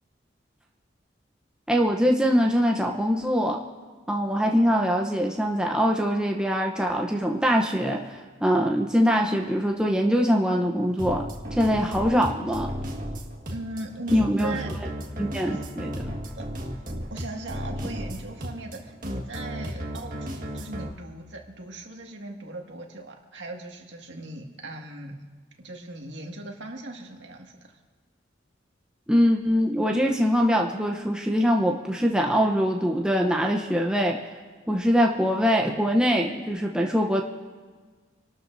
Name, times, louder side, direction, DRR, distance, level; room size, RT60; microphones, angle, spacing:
voice 1, 1.7-3.6 4.1-12.7 14.1-14.6 15.2-15.9 29.1-34.2 34.7-37.2, equal, 5° right, 0 dB, 0.8 m, -23 dB
sound 1, 11.0-20.9, equal, 45° right, 1.6 m, -34 dB
voice 2, 13.5-14.7 15.5-15.6 16.4-16.5 17.1-25.2 25.6-27.8, right 1 dB, 70° right, 1 dB, 2.0 m, -38 dB
28.0 x 12.5 x 2.7 m, 1.5 s
head